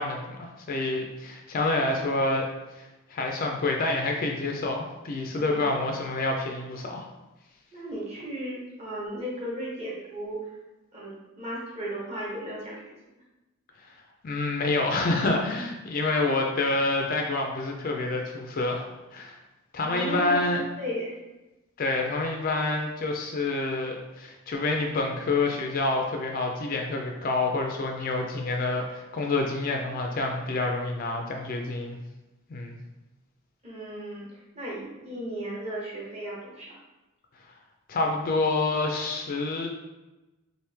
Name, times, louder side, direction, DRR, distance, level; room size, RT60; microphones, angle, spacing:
voice 1, 0.0-2.5 2.8-7.0 14.2-18.9 19.1-19.4 19.7-20.6 21.8-32.0 32.5-32.8 37.9-39.7, left 2 dB, 40° left, 2 dB, 0.4 m, -27 dB
voice 2, 5.3-5.8 7.7-10.4 10.9-12.9 19.8-21.2 33.6-34.3 34.5-36.8, equal, 30° right, -5 dB, 1.0 m, -35 dB
3.0 x 2.6 x 3.3 m, 1.1 s
head